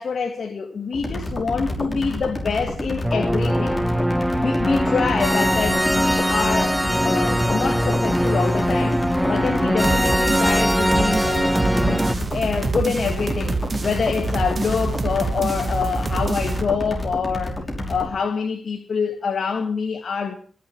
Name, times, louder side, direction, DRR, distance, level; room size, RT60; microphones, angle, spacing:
voice 1, 0.0-3.8 4.4-20.3, left 5 dB, 70° left, 1.8 m, -26 dB
sound 1, 0.9-18.1, left 1 dB, 30° left, 5.5 m, -29 dB
sound 2, 3.0-12.2, equal, 5° right, 0.6 m, -21 dB
sound 3, 9.8-16.6, right 3 dB, 45° right, 1.5 m, -26 dB
23.0 x 7.7 x 4.7 m
cardioid pair, 60°, 0 cm